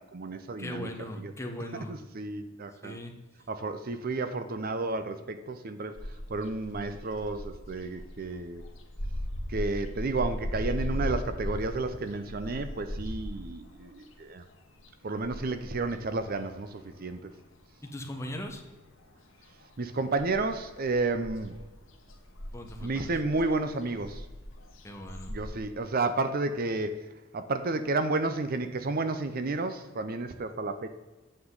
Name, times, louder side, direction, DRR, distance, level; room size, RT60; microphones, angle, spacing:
voice 1, 0.0-0.9 1.2-1.3 1.9-3.0 3.5-6.0 6.3-8.6 9.5-14.4 15.0-17.3 19.8-21.6 22.8-24.3 25.3-27.1 27.3-30.9, right 3 dB, 45° right, 9 dB, 0.6 m, -31 dB
voice 2, 0.6-1.9 2.8-3.1 17.8-18.6 22.5-23.1 24.8-25.3, left 1 dB, 15° left, 3 dB, 1.1 m, -39 dB
sound 1, 6.0-17.6 17.8-19.2 19.4-25.6, equal, 70° left, 1.4 m, -38 dB
8.7 x 7.6 x 3.9 m, 1.2 s
head